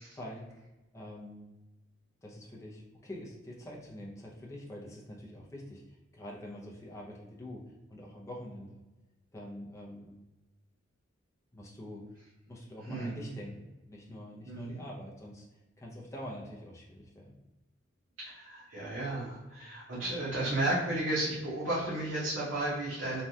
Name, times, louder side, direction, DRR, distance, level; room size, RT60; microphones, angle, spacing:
voice 1, 0.1-0.5 0.9-1.6 2.2-8.8 9.3-10.1 11.5-12.0 12.5-15.5 15.8-17.4, left 1 dB, 15° left, -3 dB, 0.5 m, -45 dB
voice 2, 12.9-13.4 14.5-14.8 18.3-23.2, right 1 dB, 75° right, -8 dB, 0.8 m, -33 dB
3.2 x 2.3 x 2.7 m, 1.1 s
head